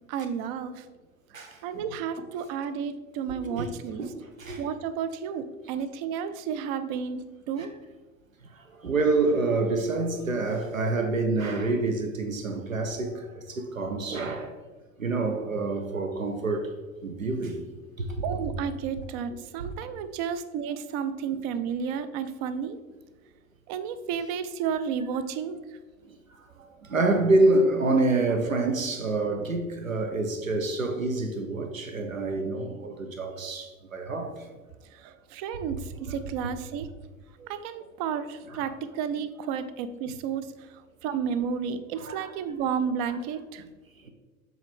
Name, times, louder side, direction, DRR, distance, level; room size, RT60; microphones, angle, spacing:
voice 1, 0.1-0.8 1.6-4.1 4.6-7.7 18.2-22.8 23.7-25.6 34.9-36.9 37.5-40.5 41.0-43.6, right 7 dB, 35° right, 0.4 m, -32 dB
voice 2, 1.3-1.8 3.4-3.7 4.0-4.1 4.4-4.6 7.6-7.7 8.8-14.5 15.0-16.7 17.0-17.6 18.0-18.1 18.3-18.4 19.6-19.7 21.3-21.4 26.9-34.3 35.5-35.6 37.4-37.5 38.4-38.6 42.0-42.3 43.0-43.2, right 2 dB, 90° right, 0.7 m, -27 dB
7.2 x 3.9 x 3.5 m
figure-of-eight pair, 85°, 39 cm